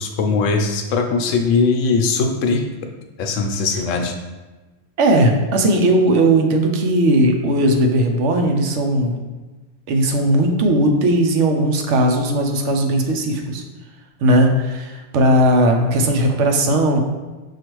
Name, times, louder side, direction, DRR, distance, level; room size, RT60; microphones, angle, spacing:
voice 1, 0.0-2.7 3.2-4.1, left 4 dB, 80° left, 4 dB, 0.9 m, -20 dB
voice 2, 5.0-9.2 9.9-13.6 14.2-17.0, right 1 dB, 70° right, 3 dB, 0.9 m, -17 dB
6.4 x 2.4 x 3.0 m, 1.2 s
omnidirectional pair, 1.3 m